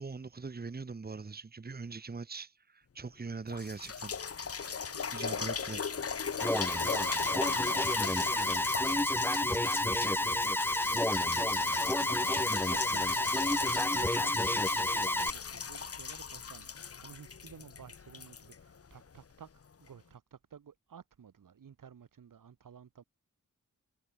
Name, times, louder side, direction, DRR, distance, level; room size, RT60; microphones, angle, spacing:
voice 1, 0.0-4.1 5.1-5.9 8.3-8.4, right 4 dB, 30° right, 1.5 m, -41 dB
sound 1, 3.0-3.1 3.5-19.2 19.9-20.0, left 6 dB, 50° left, 1.3 m, -38 dB
voice 2, 4.9-5.5 6.3-19.5 19.8-23.0, right 7 dB, 85° right, 3.1 m, -54 dB
Alarm, 6.4-15.3, left 1 dB, 5° left, 0.7 m, -30 dB
wide cardioid pair, 125°, 31 cm